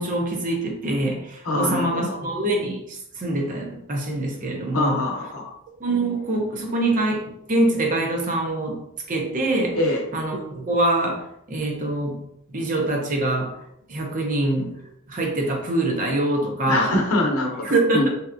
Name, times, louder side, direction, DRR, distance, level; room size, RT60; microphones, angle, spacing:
voice 1, 0.0-5.0 5.8-8.8 9.1-9.8 10.1-12.2 12.5-13.5 13.9-17.0 17.7-18.1, right 2 dB, 40° right, 1 dB, 0.6 m, -24 dB
voice 2, 1.4-2.1 4.7-5.5 9.7-10.0 16.6-18.1, left 1 dB, 90° left, 1 dB, 0.7 m, -24 dB
3.2 x 2.8 x 2.5 m, 0.78 s
head